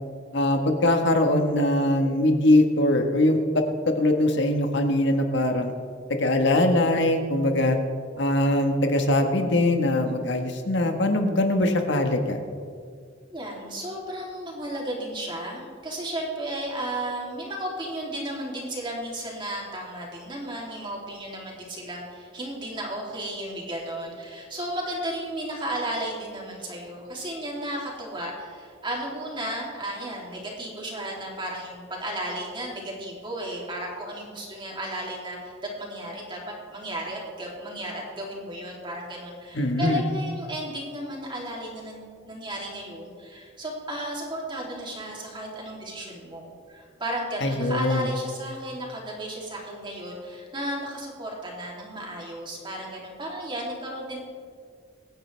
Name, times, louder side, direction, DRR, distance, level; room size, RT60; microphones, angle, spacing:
voice 1, 0.3-5.7 6.1-7.8 8.2-12.4 39.5-40.0 47.4-48.1, left 1 dB, 65° left, 5 dB, 1.5 m, -22 dB
voice 2, 13.3-36.4 36.7-54.2, right 1 dB, 25° right, -3 dB, 3.0 m, -34 dB
25.0 x 9.6 x 3.4 m, 2.2 s
head